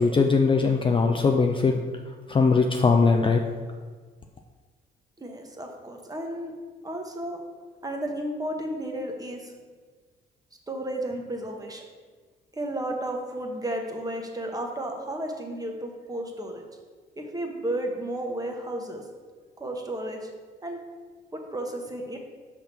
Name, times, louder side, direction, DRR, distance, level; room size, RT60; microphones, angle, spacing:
voice 1, 0.0-1.8 2.3-3.4, left 4 dB, 25° left, 3 dB, 0.4 m, -20 dB
voice 2, 5.2-6.5 6.8-7.4 7.8-9.5 10.7-11.9 12.5-16.7 17.2-19.1 19.6-20.3 20.6-20.8 21.3-22.2, right 1 dB, 20° right, 2 dB, 1.0 m, -33 dB
5.7 x 3.5 x 5.9 m, 1.4 s
cardioid pair, 90°, 20 cm